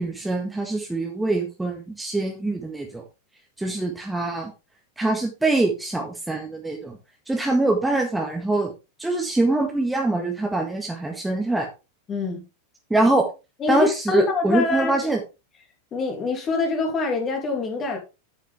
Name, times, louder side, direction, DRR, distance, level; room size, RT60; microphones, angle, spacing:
voice 1, 0.0-3.0 3.6-4.5 5.0-7.0 7.3-8.7 9.0-11.7 12.9-13.2 13.7-15.2, right 2 dB, 5° right, 1.6 m, -24 dB
voice 2, 12.1-12.4 13.6-15.1 15.9-18.0, left 4 dB, 25° left, 2.9 m, -25 dB
9.0 x 8.3 x 3.5 m
figure-of-eight pair, 90°, 0 cm